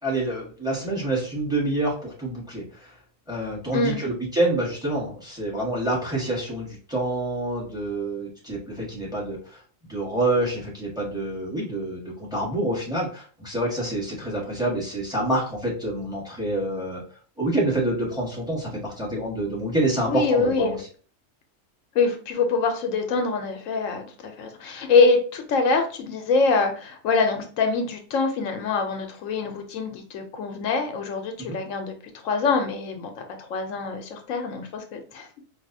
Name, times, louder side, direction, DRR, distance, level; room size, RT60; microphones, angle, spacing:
voice 1, 0.0-2.9 3.3-9.4 9.9-17.0 17.4-20.9 31.4-31.6, right 1 dB, 5° right, -4 dB, 1.2 m, -27 dB
voice 2, 20.0-20.7 21.9-31.9 32.2-33.2 33.5-35.4, left 4 dB, 80° left, 5 dB, 1.0 m, -24 dB
4.1 x 2.5 x 2.6 m, 0.41 s
omnidirectional pair, 1.4 m